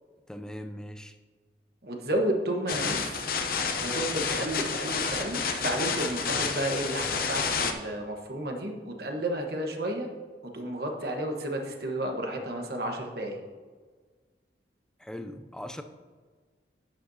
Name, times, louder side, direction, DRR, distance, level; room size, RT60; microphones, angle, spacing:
voice 1, 0.3-1.2 15.0-15.8, equal, 5° left, 7 dB, 0.5 m, -40 dB
voice 2, 1.8-3.0 3.8-10.1 10.5-13.4, right 1 dB, 60° right, 2 dB, 1.3 m, -32 dB
sound 1, 2.7-7.7, left 5 dB, 55° left, 0.8 m, -30 dB
11.0 x 9.3 x 2.8 m, 1.5 s
head